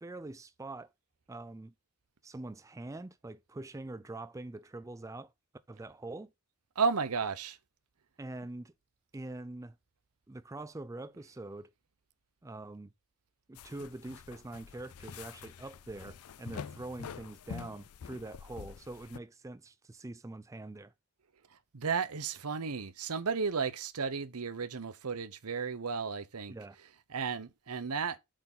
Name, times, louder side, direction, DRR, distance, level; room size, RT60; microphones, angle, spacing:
voice 1, 0.0-0.9 1.3-1.7 2.2-5.3 5.7-6.3 8.2-8.7 9.1-9.7 10.3-11.7 12.4-12.9 13.5-20.9 26.5-26.8, right 2 dB, 15° right, 0.4 m, -44 dB
voice 2, 6.8-7.6 21.7-28.2, right 5 dB, 80° right, 0.9 m, -34 dB
sound 1, 13.5-19.2, left 6 dB, 75° left, 0.4 m, -47 dB
7.7 x 4.6 x 5.5 m
head